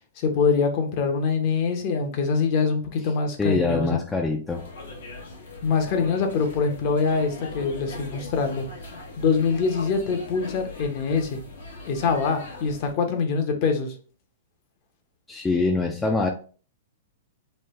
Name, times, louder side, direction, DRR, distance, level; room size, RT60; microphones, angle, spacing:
voice 1, 0.2-4.0 5.6-8.7 9.2-11.4 11.9-13.9, left 5 dB, 45° left, 0.7 m, -24 dB
voice 2, 3.4-4.6 15.3-16.3, left 3 dB, 10° left, 0.3 m, -24 dB
sound 1, 4.5-12.9, left 2 dB, 80° left, 1.0 m, -40 dB
3.1 x 2.2 x 3.1 m
hypercardioid pair, 140°, 0 cm